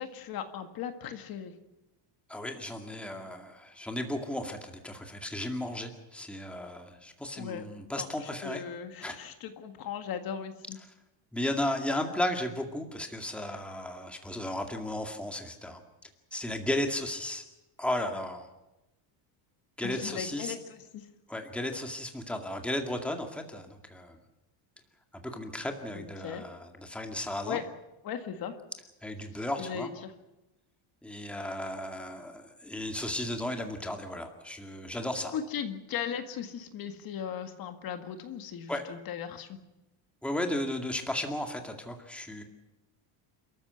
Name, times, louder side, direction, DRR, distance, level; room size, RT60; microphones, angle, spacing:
voice 1, 0.0-1.5 7.3-7.7 8.0-10.8 19.8-21.1 25.9-26.4 27.5-27.6 28.0-28.6 29.6-29.9 35.3-39.5, left 8 dB, 45° left, 7 dB, 2.0 m, -37 dB
voice 2, 2.3-8.6 9.0-9.1 11.3-15.8 16.3-17.4 17.8-18.5 19.8-20.6 21.3-24.2 25.2-27.6 29.0-29.9 31.0-35.4 38.7-38.8 40.2-42.4, left 1 dB, ahead, 4 dB, 2.1 m, -34 dB
28.5 x 14.0 x 8.1 m, 0.99 s
cardioid pair, 160°, 48 cm